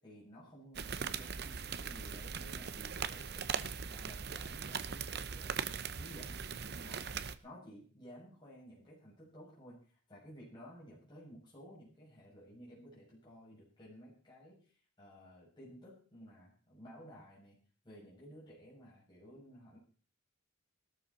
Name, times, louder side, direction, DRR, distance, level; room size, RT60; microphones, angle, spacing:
voice 1, 0.0-5.5 5.8-6.5 6.8-9.8 10.1-17.6 17.8-19.8, equal, 20° left, -7 dB, 7.3 m, -55 dB
sound 1, 0.7-7.4, right 6 dB, 55° right, 0.8 m, -40 dB
17.5 x 13.0 x 4.3 m, 0.39 s
head